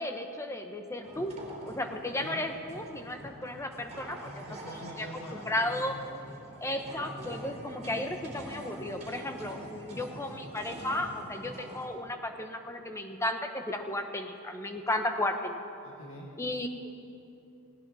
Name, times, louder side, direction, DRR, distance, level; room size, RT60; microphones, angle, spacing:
voice 1, 0.0-1.3 1.7-4.4 5.0-5.1 5.3-5.9 6.6-15.6 16.4-16.9, left 1 dB, 15° left, 5 dB, 1.0 m, -34 dB
sound 1, 1.0-11.9, right 1 dB, 35° right, 3.2 m, -45 dB
voice 2, 4.5-6.0 9.9-10.3 15.8-16.3, equal, 65° left, -3 dB, 1.8 m, -45 dB
18.5 x 18.0 x 4.2 m, 2.7 s
head